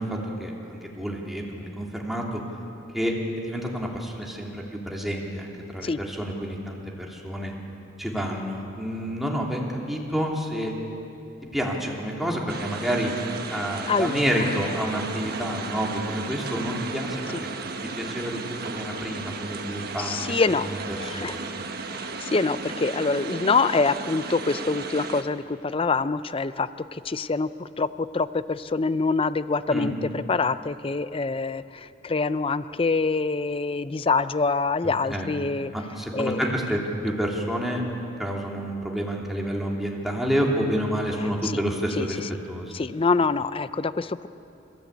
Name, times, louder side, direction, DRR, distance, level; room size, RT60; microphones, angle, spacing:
voice 1, 0.0-2.4 2.9-7.5 8.0-10.7 11.5-13.1 13.5-17.2 18.0-20.3 20.6-21.5 29.7-29.9 34.8-35.3 35.7-37.8 38.2-42.2 42.5-42.7, equal, ahead, -2 dB, 2.9 m, -29 dB
sound 1, 12.5-25.2, right 4 dB, 55° right, 1.4 m, -35 dB
voice 2, 13.9-14.4 20.0-20.7 21.0-21.3 21.8-35.7 36.1-36.5 41.4-41.6 42.0-42.1 42.7-44.3, left 4 dB, 30° left, 14 dB, 0.5 m, -25 dB
29.5 x 15.5 x 8.5 m, 2.8 s
head